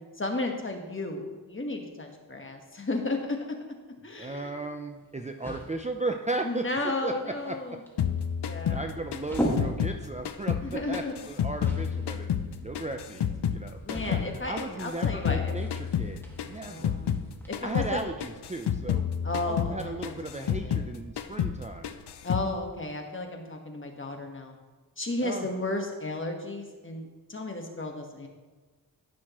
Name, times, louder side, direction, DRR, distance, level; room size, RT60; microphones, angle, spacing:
voice 1, 0.2-3.4 4.0-4.5 6.4-7.8 8.4-8.8 10.6-11.1 13.8-15.5 16.6-17.2 17.5-18.0 19.2-20.1 20.4-20.8 22.2-24.6 25.0-28.3, left 2 dB, 30° left, 3 dB, 1.4 m, -33 dB
sound 1, 4.1-17.5, equal, 5° left, 1.9 m, -40 dB
voice 2, 4.2-7.6 8.6-12.3 12.6-14.2 14.4-16.9 17.6-19.0 19.4-21.9 25.2-25.5, right 2 dB, 20° right, 4 dB, 0.5 m, -36 dB
sound 2, 8.0-10.7 10.9-13.6 13.9-17.3 17.5-17.9 18.2-20.9 21.2-21.6 21.8-22.5, left 8 dB, 85° left, 0.6 m, -30 dB
16.0 x 6.3 x 3.0 m, 1.3 s
wide cardioid pair, 80°, 39 cm